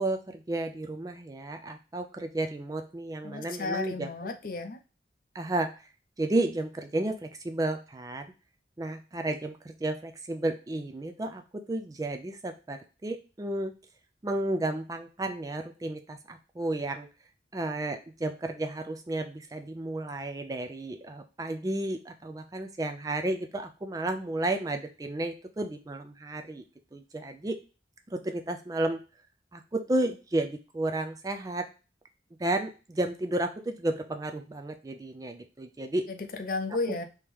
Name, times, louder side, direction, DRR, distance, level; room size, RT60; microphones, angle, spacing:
voice 1, 0.0-4.1 5.3-5.7 6.2-8.3 8.8-13.7 14.2-17.1 17.5-26.6 26.9-27.6 28.1-29.0 29.5-31.7 32.4-36.1 36.9-37.0, right 2 dB, 20° right, 7 dB, 0.3 m, -32 dB
voice 2, 3.2-4.8 36.1-37.0, left 3 dB, 50° left, 5 dB, 0.6 m, -33 dB
3.5 x 3.0 x 4.7 m, 0.32 s
head